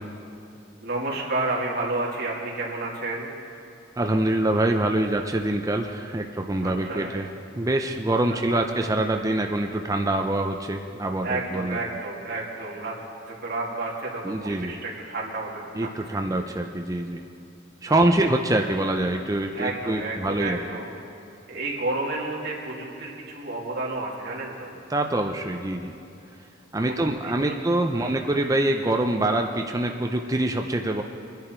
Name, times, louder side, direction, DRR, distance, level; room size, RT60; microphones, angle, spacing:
voice 1, 0.8-3.3 6.6-7.1 8.3-8.6 11.2-12.9 13.2-16.2 17.8-18.2 19.5-20.9 21.5-24.7 26.8-27.6 28.0-28.3, right 2 dB, 60° right, -4 dB, 2.7 m, -31 dB
voice 2, 4.0-7.3 7.6-11.8 14.2-14.7 15.8-17.2 17.8-20.6 24.9-25.9 26.7-31.0, right 1 dB, 20° right, 3 dB, 0.6 m, -25 dB
22.5 x 10.5 x 4.5 m, 2.7 s
head